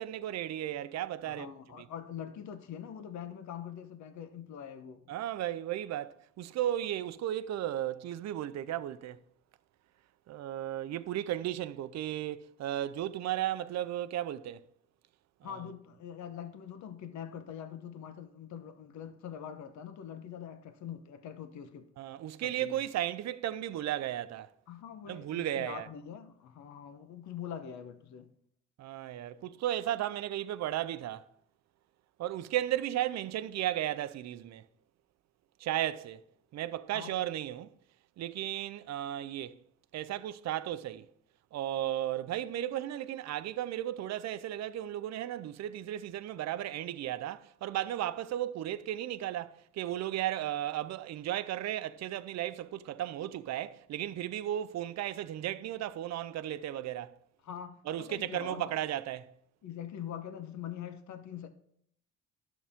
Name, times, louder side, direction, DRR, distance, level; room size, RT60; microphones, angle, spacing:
voice 1, 0.0-1.5 1.8-1.9 5.1-9.2 10.3-14.6 22.0-24.5 25.1-25.9 28.8-31.3 32.2-34.6 35.6-36.2 36.5-37.7 38.2-39.6 39.9-41.1 41.5-57.1 57.9-59.3, right 12 dB, 60° right, 0.6 m, -35 dB
voice 2, 1.2-5.1 15.4-21.9 22.4-22.8 24.7-28.3 36.9-37.1 57.4-58.7 59.6-61.5, left 9 dB, 65° left, 0.9 m, -43 dB
11.0 x 7.1 x 3.6 m
cardioid pair, 85°, 31 cm